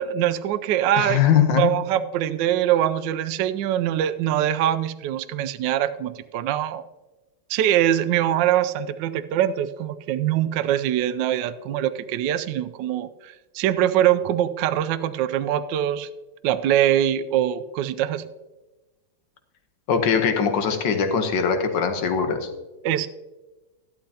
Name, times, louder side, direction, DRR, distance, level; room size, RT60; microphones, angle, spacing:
voice 1, 0.0-1.2 1.6-6.8 7.5-16.1 16.4-18.2 22.8-23.1, right 11 dB, 75° right, 12 dB, 1.1 m, -23 dB
voice 2, 1.0-1.7 19.9-22.5, left 7 dB, 65° left, 7 dB, 1.7 m, -21 dB
12.5 x 11.5 x 2.8 m, 1.1 s
omnidirectional pair, 2.3 m